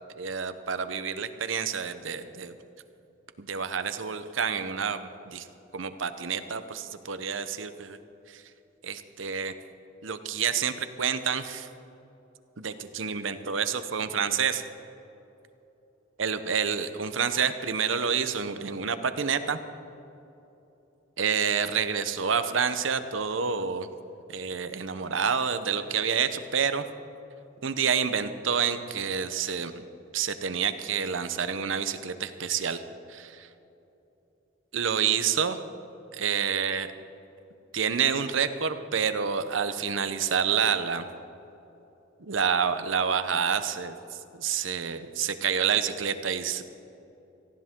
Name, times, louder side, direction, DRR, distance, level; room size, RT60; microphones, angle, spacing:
voice 1, 0.2-2.5 3.4-5.5 5.7-8.0 8.3-8.4 8.8-9.5 10.0-11.7 12.6-14.6 16.2-19.6 21.2-23.9 24.3-26.8 27.6-29.8 30.1-32.8 33.1-33.5 34.7-35.6 36.1-36.9 37.7-41.1 42.2-43.9 44.3-46.6, right 7 dB, 90° right, 10 dB, 0.9 m, -28 dB
18.5 x 15.5 x 3.7 m, 3.0 s
head